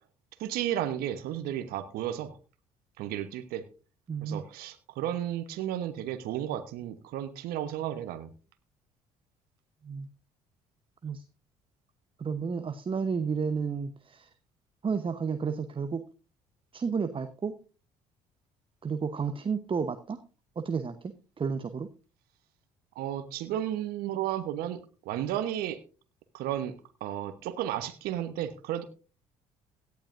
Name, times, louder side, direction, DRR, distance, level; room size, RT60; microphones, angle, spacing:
voice 1, 0.4-2.3 3.0-3.6 4.2-8.3 23.0-25.8 26.3-26.7 27.0-28.8, right 11 dB, 65° right, 10 dB, 1.1 m, -33 dB
voice 2, 4.1-4.4 9.8-10.1 11.0-11.2 12.2-14.3 14.8-16.0 16.7-17.6 18.8-20.2 20.6-21.1 21.4-21.9, right 5 dB, 30° right, 9 dB, 1.0 m, -31 dB
17.0 x 12.0 x 2.6 m, 0.35 s
hypercardioid pair, 55°, 17 cm